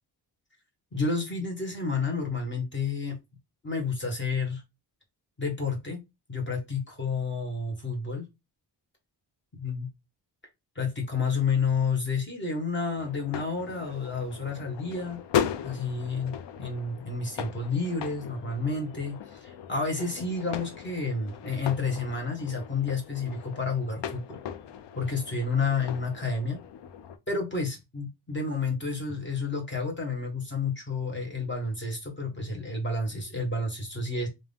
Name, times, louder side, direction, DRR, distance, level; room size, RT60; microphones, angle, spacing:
voice 1, 0.9-3.2 3.6-4.6 5.4-6.0 6.3-8.2 9.6-9.9 10.7-15.2 15.6-24.4 24.9-26.6 27.3-34.3, left 4 dB, 25° left, 1 dB, 1.2 m, -30 dB
sound 1, 13.0-27.2, left 9 dB, 75° left, 0.6 m, -37 dB
3.5 x 2.6 x 3.4 m, 0.23 s
wide cardioid pair, 155°, 43 cm